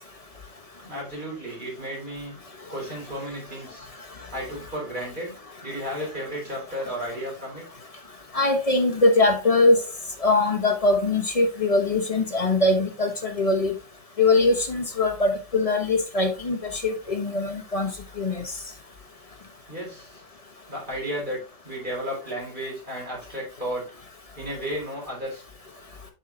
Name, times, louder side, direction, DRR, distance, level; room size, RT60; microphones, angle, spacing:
voice 1, 0.8-2.3 2.7-3.9 4.3-5.3 5.6-7.6 19.7-20.2 20.7-23.8 24.4-25.4, equal, 25° right, 4.5 m, -33 dB
voice 2, 8.3-9.8 10.2-13.7 14.2-17.9 18.2-18.4, left 2 dB, 25° left, 1.0 m, -22 dB
8.1 x 5.6 x 2.8 m
omnidirectional pair, 2.0 m